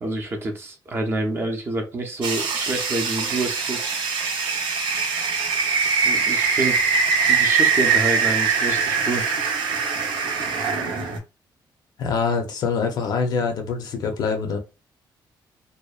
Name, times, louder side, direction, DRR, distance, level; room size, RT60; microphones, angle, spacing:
voice 1, 0.0-3.9 6.0-6.8 7.3-9.3, right 2 dB, 30° right, 0.5 m, -27 dB
sound 1, 2.2-11.2, right 5 dB, 90° right, 0.6 m, -22 dB
voice 2, 12.0-14.6, left 5 dB, 55° left, 0.5 m, -24 dB
2.6 x 2.1 x 2.3 m
cardioid pair, 170°, 8 cm